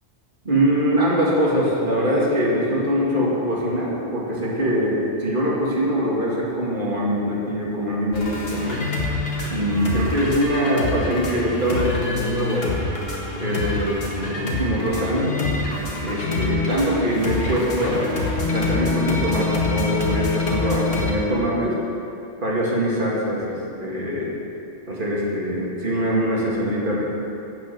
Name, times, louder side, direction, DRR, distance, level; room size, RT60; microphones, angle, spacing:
voice 1, 0.4-8.8 9.5-12.7 13.3-15.4 16.0-18.1 18.5-21.8 22.4-24.3 24.9-27.0, equal, 45° right, -5 dB, 2.3 m, -23 dB
sound 1, 8.1-21.1, left 3 dB, 55° left, 1.7 m, -26 dB
Wind instrument woodwind instrument, 17.8-22.0, left 2 dB, 90° left, 1.2 m, -33 dB
12.0 x 5.6 x 7.6 m, 2.8 s
omnidirectional pair, 1.2 m